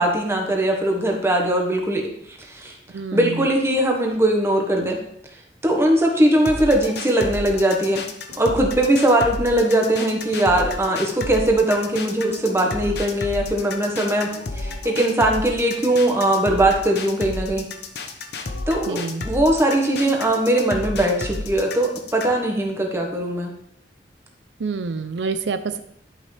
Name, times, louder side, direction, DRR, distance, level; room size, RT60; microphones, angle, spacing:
voice 1, 0.0-2.0 2.3-2.7 3.1-5.0 5.6-8.0 8.4-17.7 18.7-23.5, right 1 dB, 15° right, 1 dB, 1.3 m, -20 dB
voice 2, 2.9-3.5 18.9-19.2 24.6-25.8, right 4 dB, 85° right, 10 dB, 0.5 m, -27 dB
sound 1, 6.5-22.4, left 3 dB, 65° left, 0.9 m, -31 dB
11.0 x 5.7 x 3.4 m, 0.69 s
head